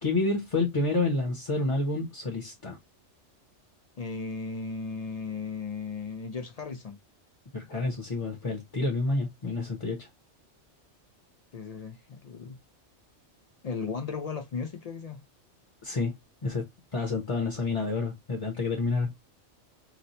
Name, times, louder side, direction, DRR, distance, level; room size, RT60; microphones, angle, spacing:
voice 1, 0.0-2.8 7.5-10.1 15.8-16.1 16.4-16.7 16.9-19.1, left 3 dB, 30° left, 0.7 m, -29 dB
voice 2, 4.0-7.0 11.5-12.6 13.6-15.2, left 5 dB, 70° left, 0.3 m, -36 dB
3.0 x 2.1 x 3.9 m
omnidirectional pair, 1.2 m